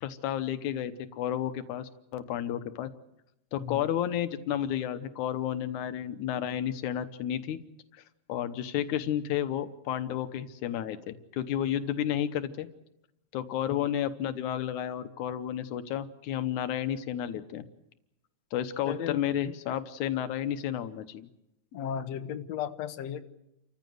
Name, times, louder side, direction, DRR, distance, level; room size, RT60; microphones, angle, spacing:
voice 1, 0.0-2.9 3.5-7.6 7.9-8.0 8.3-12.7 13.3-17.7 18.5-21.3, left 10 dB, 90° left, 11 dB, 2.4 m, -32 dB
voice 2, 3.6-3.9 13.7-13.8 18.9-19.2 21.7-23.2, left 9 dB, 65° left, 8 dB, 2.2 m, -35 dB
29.0 x 15.0 x 7.8 m, 0.86 s
omnidirectional pair, 3.3 m